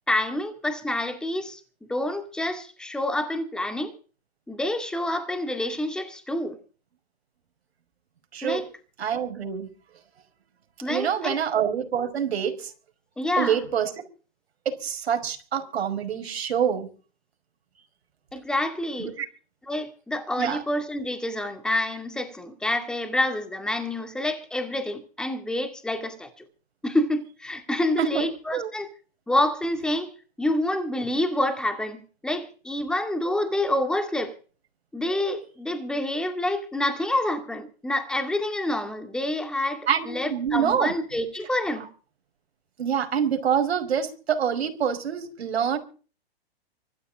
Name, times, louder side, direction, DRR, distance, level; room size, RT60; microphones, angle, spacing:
voice 1, 0.1-3.9 4.5-6.6 8.4-8.7 10.8-11.4 13.2-13.6 18.3-19.1 19.7-26.5 26.8-28.9 29.3-30.1 30.4-34.4 34.9-41.9, left 1 dB, ahead, 2.2 m, -27 dB
voice 2, 8.3-8.6 9.0-9.7 10.9-12.7 13.4-13.9 14.7-16.9 19.0-19.3 20.4-20.6 28.0-28.7 39.9-40.9 42.8-45.8, right 8 dB, 80° right, 5.4 m, -26 dB
25.5 x 13.0 x 3.7 m
hypercardioid pair, 165°, 32 cm